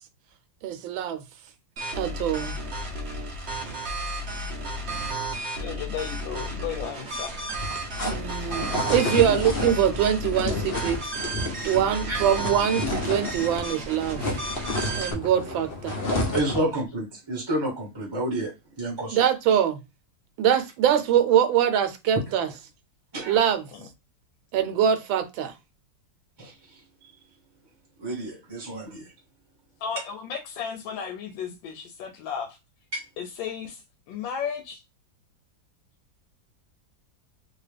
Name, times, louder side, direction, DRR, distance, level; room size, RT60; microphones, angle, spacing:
voice 1, 0.6-1.2 1.9-2.6 8.0-11.0 11.6-14.2 15.0-16.0 19.1-19.8 20.4-22.5 23.3-23.6 24.5-25.5, right 9 dB, 80° right, 1.4 m, -23 dB
sound 1, 1.8-15.1, right 1 dB, 65° right, 0.6 m, -33 dB
voice 2, 5.5-7.4 29.8-32.6 33.2-33.8 34.1-34.8, left 7 dB, 80° left, 1.3 m, -34 dB
sound 2, 7.4-13.7 14.0-16.7, left 2 dB, 65° left, 0.5 m, -30 dB
voice 3, 16.3-19.2 23.1-23.4 26.4-26.5 28.0-29.1 32.9-33.0, right 1 dB, 20° right, 0.7 m, -30 dB
2.9 x 2.9 x 3.3 m
omnidirectional pair, 2.2 m